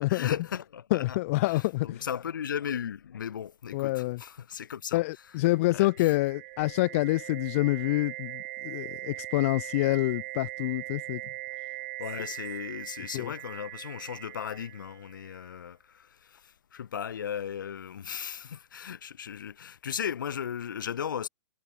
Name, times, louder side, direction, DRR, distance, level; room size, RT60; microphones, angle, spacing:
voice 1, 0.0-1.2 1.4-5.0 5.7-6.1 12.0-21.3, left 8 dB, 85° left, 1.5 m, -36 dB
voice 2, 0.9-2.0 3.7-4.2 4.9-11.2 13.1-13.3, left 20 dB, 45° left, 0.4 m, -27 dB
sound 1, 5.5-15.4, right 21 dB, 45° right, 1.2 m, -41 dB
hypercardioid pair, 145°, 10 cm